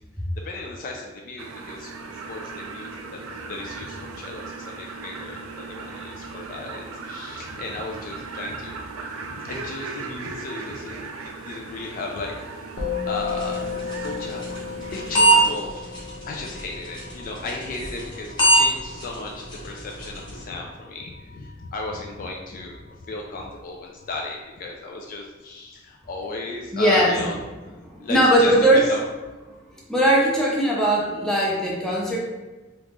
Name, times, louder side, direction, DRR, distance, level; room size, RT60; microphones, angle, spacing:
voice 1, 0.4-8.7 9.4-14.6 14.9-22.8 23.0-27.4 27.6-29.0, left 2 dB, 45° left, 0 dB, 0.3 m, -35 dB
sound 1, 1.4-15.5, right 4 dB, 85° right, 0.4 m, -37 dB
Musical instrument, 12.8-22.3, left 6 dB, 70° left, 0.8 m, -35 dB
sound 2, 13.1-20.4, right 1 dB, 25° left, 1.0 m, -25 dB
voice 2, 26.7-27.2 27.8-28.8 29.9-32.2, right 1 dB, 5° left, -5 dB, 0.7 m, -19 dB
3.1 x 2.4 x 3.5 m, 1.2 s
head